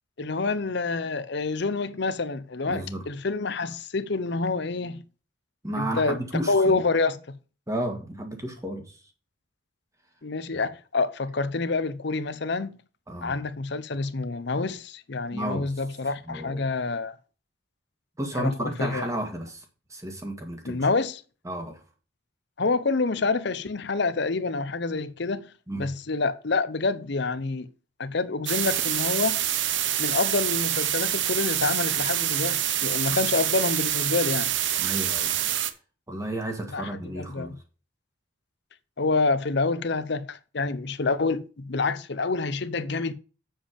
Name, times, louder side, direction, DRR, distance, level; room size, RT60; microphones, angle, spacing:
voice 1, 0.2-5.0 5.8-7.2 10.2-12.8 13.2-17.2 18.3-19.0 20.6-21.2 22.6-25.5 25.8-27.7 28.0-29.4 30.0-34.5 36.7-37.5 39.0-43.1, left 3 dB, 60° left, 0.7 m, -27 dB
voice 2, 2.7-3.0 5.6-6.7 7.7-9.0 10.5-10.6 13.1-13.4 15.3-15.7 16.2-16.7 18.2-19.6 19.9-20.9 21.4-21.8 25.7-25.9 33.1-33.2 34.8-35.3 36.1-37.6, right 1 dB, 15° right, 1.7 m, -32 dB
sound 1, 28.5-35.7, right 11 dB, 65° right, 0.8 m, -26 dB
7.3 x 7.2 x 5.2 m
head